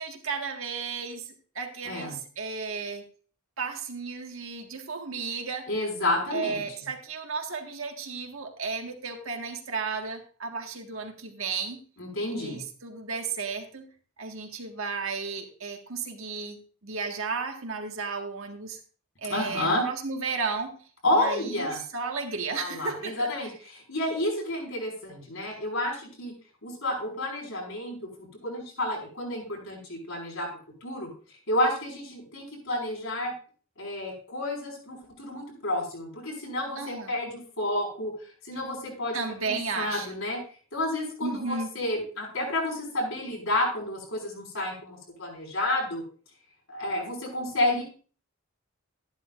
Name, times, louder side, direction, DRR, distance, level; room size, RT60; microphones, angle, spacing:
voice 1, 0.0-3.1 3.6-5.7 6.3-11.8 12.3-13.9 14.2-18.8 19.2-20.8 21.1-23.3 36.8-37.1 39.1-40.1 41.2-41.8 47.7-47.8, right 4 dB, 70° right, 3 dB, 1.7 m, -34 dB
voice 2, 5.7-6.7 12.0-12.6 19.3-19.8 21.0-21.8 22.6-26.3 26.6-28.0 28.4-30.5 30.8-31.1 31.5-33.3 33.8-38.1 38.4-39.2 39.4-40.4 40.7-46.0 46.7-47.8, left 1 dB, 70° left, -1 dB, 5.5 m, -30 dB
12.5 x 11.0 x 2.5 m, 0.40 s
head